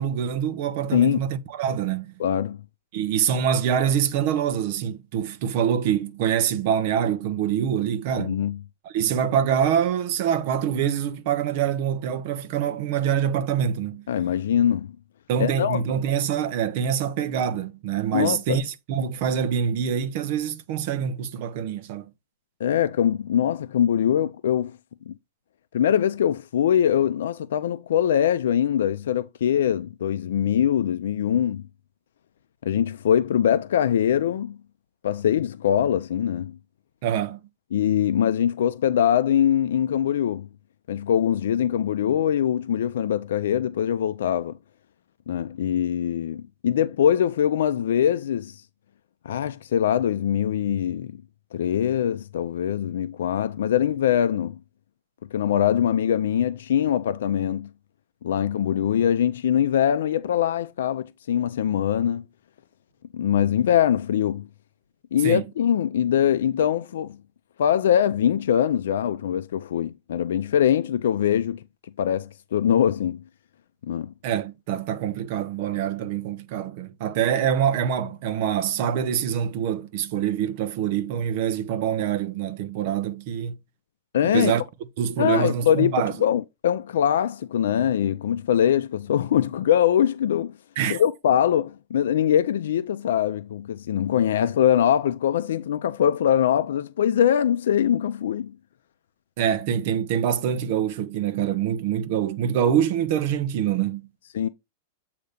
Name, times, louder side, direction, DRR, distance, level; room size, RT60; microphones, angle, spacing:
voice 1, 0.0-2.1 2.9-8.4 8.8-14.0 15.3-22.1 37.0-37.4 65.2-65.4 74.2-83.6 84.3-84.6 85.0-86.1 90.8-91.0 99.4-104.1, right 8 dB, 40° right, 0.7 m, -25 dB
voice 2, 2.2-2.6 8.2-8.6 14.1-14.9 15.4-15.8 18.1-18.4 22.6-24.7 25.1-25.2 25.7-31.6 32.6-34.6 35.0-36.5 37.7-40.5 40.9-44.5 45.3-48.6 49.2-51.1 51.5-54.6 55.3-57.7 58.2-62.2 63.1-64.5 65.1-67.2 67.6-71.6 72.0-73.2 73.9-74.1 84.1-84.5 85.2-85.9 86.2-90.5 90.9-98.5 104.3-104.5, left 9 dB, 80° left, 0.4 m, -22 dB
8.0 x 2.8 x 5.0 m
supercardioid pair, 180°, 0 cm